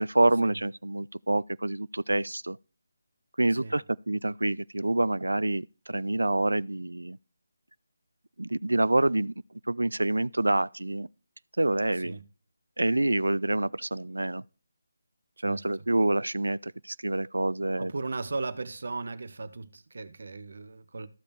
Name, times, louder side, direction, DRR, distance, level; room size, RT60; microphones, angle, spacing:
voice 1, 0.0-2.6 3.4-7.2 8.4-9.3 9.7-11.1 11.6-12.1 12.8-14.4 15.4-17.9, right 2 dB, 85° right, 0.3 m, -27 dB
voice 2, 3.5-3.8 12.0-12.2 15.4-15.8 17.8-21.1, right 3 dB, 65° right, 1.0 m, -37 dB
14.5 x 5.1 x 3.2 m
figure-of-eight pair, 155°, 0 cm